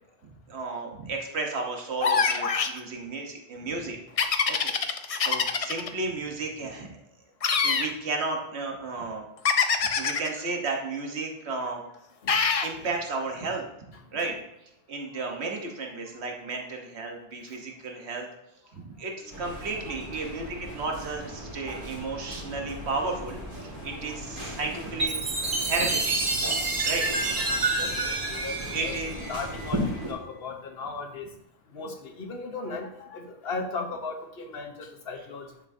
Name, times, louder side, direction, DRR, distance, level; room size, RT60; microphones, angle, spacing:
voice 1, 0.2-4.0 4.5-6.9 7.6-9.2 10.0-11.8 12.6-13.7 14.1-14.3 14.9-18.3 18.7-25.1 25.7-26.1 26.4-26.5 26.8-27.1 28.7-29.1, right 3 dB, 80° right, 2 dB, 1.4 m, -33 dB
sound 1, 2.0-2.8 4.2-5.9 7.4-7.9 9.4-10.3 12.3-12.7, left 5 dB, 45° left, 0.5 m, -24 dB
voice 2, 19.2-20.0 27.4-29.0 29.3-31.3 31.7-35.5, left 4 dB, 65° left, 4 dB, 1.2 m, -37 dB
sound 2, 19.3-30.1, equal, 35° right, 1.9 m, -37 dB
Chime, 25.0-29.7, right 3 dB, 50° right, 1.5 m, -28 dB
9.6 x 5.8 x 2.7 m, 0.82 s
omnidirectional pair, 1.1 m